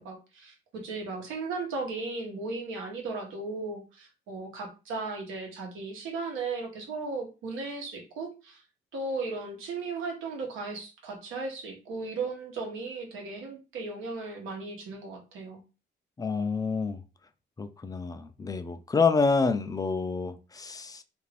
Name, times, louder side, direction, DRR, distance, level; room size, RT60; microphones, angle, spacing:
voice 1, 0.0-8.6 8.9-15.6, right 3 dB, 85° right, 1.0 m, -36 dB
voice 2, 16.2-17.0 17.6-21.0, left 4 dB, 20° left, 0.4 m, -28 dB
2.5 x 2.5 x 3.3 m
cardioid pair, 90°, 20 cm